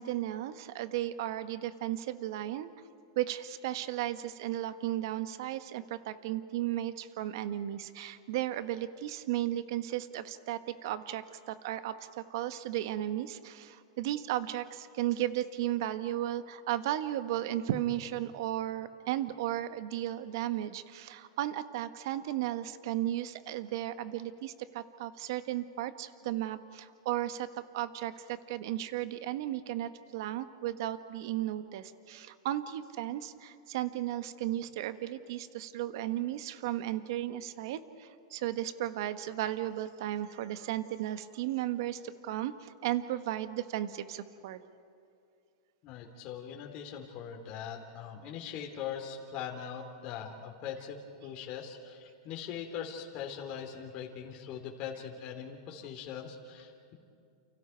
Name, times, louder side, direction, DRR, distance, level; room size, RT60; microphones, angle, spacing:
voice 1, 0.0-2.7 3.1-44.6, right 13 dB, 65° right, 11 dB, 1.3 m, -35 dB
voice 2, 45.8-56.9, left 8 dB, 40° left, 0 dB, 3.2 m, -41 dB
30.0 x 29.5 x 4.7 m, 2.5 s
hypercardioid pair, 135°, 2 cm